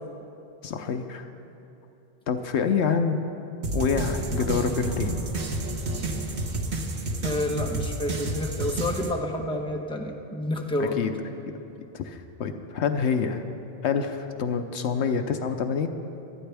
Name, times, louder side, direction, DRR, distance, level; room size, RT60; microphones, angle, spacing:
voice 1, 0.6-1.3 2.3-3.2 3.7-5.2 10.8-11.1 11.9-13.5 13.8-15.9, left 6 dB, 75° left, 7 dB, 1.0 m, -27 dB
sound 1, 3.6-9.1, right 2 dB, 65° right, 1.4 m, -30 dB
voice 2, 7.2-11.0, left 1 dB, 5° left, 1 dB, 0.9 m, -29 dB
25.5 x 9.5 x 3.4 m, 2.9 s
omnidirectional pair, 1.2 m